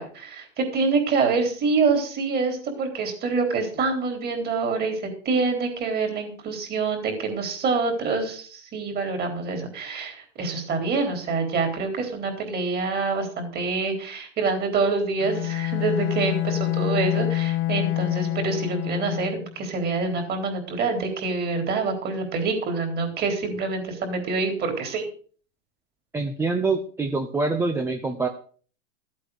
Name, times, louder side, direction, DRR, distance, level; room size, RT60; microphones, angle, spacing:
voice 1, 0.0-25.1, right 4 dB, 25° right, 5 dB, 3.9 m, -26 dB
Bowed string instrument, 15.2-19.5, left 15 dB, 35° left, 1.0 m, -26 dB
voice 2, 26.1-28.3, right 3 dB, 5° right, 5 dB, 0.7 m, -25 dB
14.5 x 8.4 x 6.5 m, 0.43 s
supercardioid pair, 150°, 38 cm